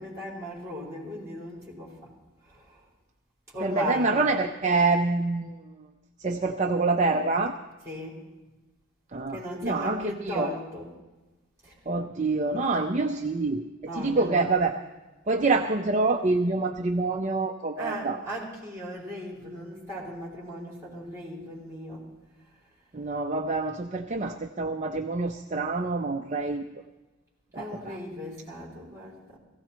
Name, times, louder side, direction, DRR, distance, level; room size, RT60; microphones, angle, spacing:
voice 1, 0.0-2.0 2.5-2.8 3.5-4.3 7.8-8.2 9.3-10.9 11.6-11.7 13.9-14.7 17.8-22.0 26.3-26.4 27.5-29.4, equal, 15° right, -4 dB, 4.9 m, -37 dB
voice 2, 3.6-5.5 6.2-7.5 9.1-10.5 11.9-13.6 14.0-14.7 15.3-18.2 22.9-26.6 27.5-28.0, right 3 dB, 35° right, 5 dB, 0.6 m, -26 dB
16.5 x 16.0 x 4.4 m, 1.1 s
head